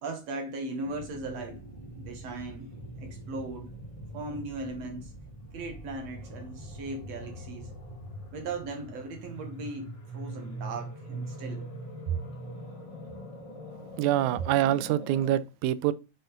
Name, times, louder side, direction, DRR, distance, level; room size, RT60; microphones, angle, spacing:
voice 1, 0.0-3.7 4.1-5.1 5.5-7.7 8.3-11.7 12.1-12.2, right 3 dB, 60° right, 2.1 m, -38 dB
sound 1, 0.8-15.4, right 1 dB, 20° left, 1.0 m, -42 dB
voice 2, 14.0-15.9, right 13 dB, 80° right, 1.7 m, -25 dB
7.9 x 4.3 x 3.9 m
omnidirectional pair, 3.8 m